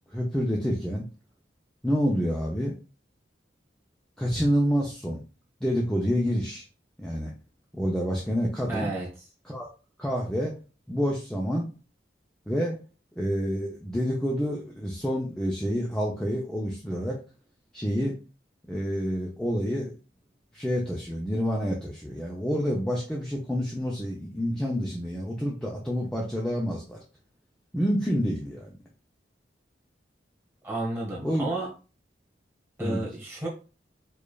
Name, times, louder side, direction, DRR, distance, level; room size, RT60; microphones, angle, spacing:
voice 1, 0.1-1.0 1.8-2.7 4.2-5.2 5.6-6.6 7.0-7.3 7.7-8.9 9.5-9.7 10.0-10.5 10.9-11.7 12.5-12.8 13.2-17.2 17.7-18.2 18.7-19.9 20.5-27.0 27.7-28.7 31.2-31.5 32.8-33.0, equal, 5° left, -3 dB, 0.5 m, -28 dB
voice 2, 8.7-9.1 30.6-31.7 32.8-33.5, right 2 dB, 15° right, -3 dB, 1.3 m, -31 dB
4.9 x 2.4 x 2.3 m, 0.34 s
head